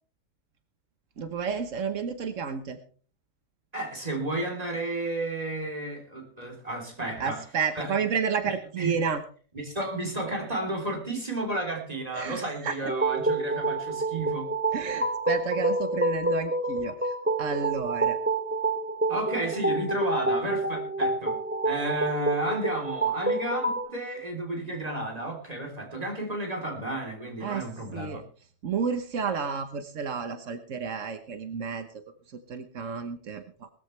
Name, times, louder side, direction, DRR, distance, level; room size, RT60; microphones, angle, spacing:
voice 1, 1.2-2.8 7.2-9.2 12.1-12.9 14.7-18.2 27.4-28.2 28.6-33.7, right 6 dB, 85° right, 9 dB, 1.5 m, -31 dB
voice 2, 3.7-7.4 7.8-7.9 8.8-8.9 9.6-14.5 19.1-21.4 21.6-28.2, right 1 dB, 30° right, 2 dB, 3.6 m, -32 dB
sound 1, 12.8-23.9, right 2 dB, 10° right, 1.6 m, -28 dB
20.0 x 13.5 x 3.3 m, 0.42 s
omnidirectional pair, 1.3 m